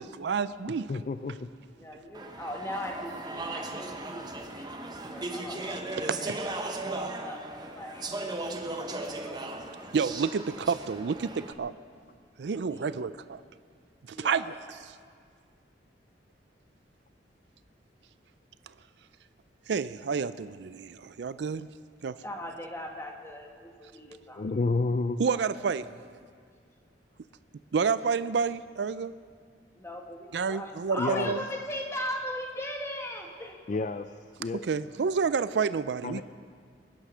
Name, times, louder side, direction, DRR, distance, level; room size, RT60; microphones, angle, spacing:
voice 1, 0.0-0.9 9.9-11.7 12.4-13.4 14.1-14.5 19.7-21.7 22.0-22.1 25.2-25.9 27.7-29.1 30.3-31.4 34.7-36.2, right 5 dB, 70° right, 15 dB, 0.4 m, -29 dB
voice 2, 0.9-1.5 24.4-25.2 31.0-31.3 33.7-34.7 36.0-36.2, left 3 dB, 40° left, 10 dB, 0.4 m, -30 dB
voice 3, 1.8-6.3 6.6-8.1 8.8-9.5 12.6-13.1 14.1-14.6 22.2-24.4 29.7-33.6, left 1 dB, 15° left, 2 dB, 1.6 m, -39 dB
Speech / Chatter, 2.1-11.5, right 2 dB, 25° right, 1.0 m, -37 dB
23.0 x 10.0 x 6.2 m, 2.1 s
head